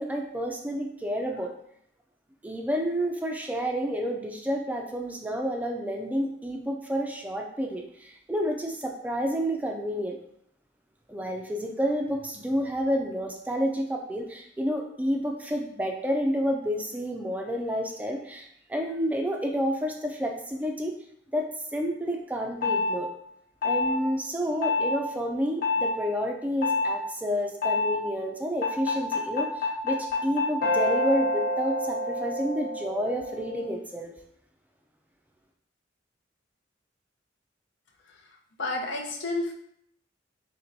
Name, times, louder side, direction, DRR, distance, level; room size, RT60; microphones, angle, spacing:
voice 1, 0.0-1.5 2.4-10.2 11.1-20.9 21.3-23.1 23.6-34.1, equal, 10° right, 2 dB, 0.3 m, -30 dB
sound 1, 22.6-23.0 23.6-24.0 24.6-25.0 25.6-25.9 26.6-27.0 27.6-28.0 28.6-33.7, left 2 dB, 50° left, 0.9 m, -27 dB
voice 2, 38.6-39.5, left 2 dB, 75° left, 1 dB, 0.7 m, -30 dB
4.4 x 3.2 x 2.6 m, 0.71 s
head